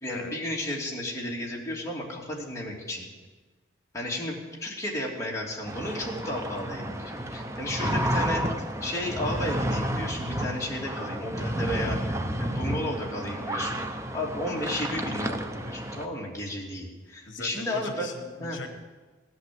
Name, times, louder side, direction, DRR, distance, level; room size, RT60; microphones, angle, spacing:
voice 1, 0.0-3.1 3.9-8.4 8.8-18.1 18.4-18.6, left 1 dB, 15° left, -3 dB, 2.9 m, -33 dB
sound 1, 5.7-16.1, right 1 dB, 15° right, 0.8 m, -31 dB
voice 2, 17.2-18.8, left 3 dB, 70° left, 7 dB, 1.1 m, -41 dB
17.0 x 11.0 x 7.8 m, 1.3 s
head